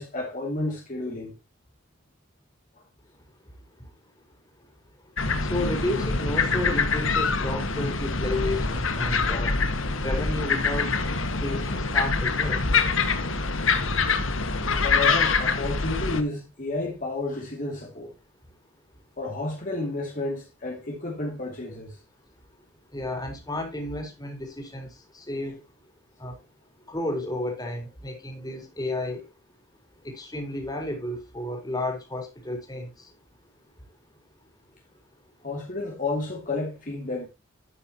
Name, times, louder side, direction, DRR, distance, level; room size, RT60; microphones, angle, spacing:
voice 1, 0.0-1.3 10.0-10.1 14.8-18.1 19.2-22.0 35.4-37.3, left 2 dB, 40° left, 2.5 m, -31 dB
sound 1, 5.2-16.2, left 4 dB, 80° left, 1.7 m, -25 dB
voice 2, 5.4-9.5 10.0-10.9 11.2-12.6 22.9-24.9 25.1-25.6 26.2-26.3 26.9-29.2 30.0-32.9, left 1 dB, 20° left, 3.9 m, -32 dB
12.0 x 9.5 x 2.9 m
head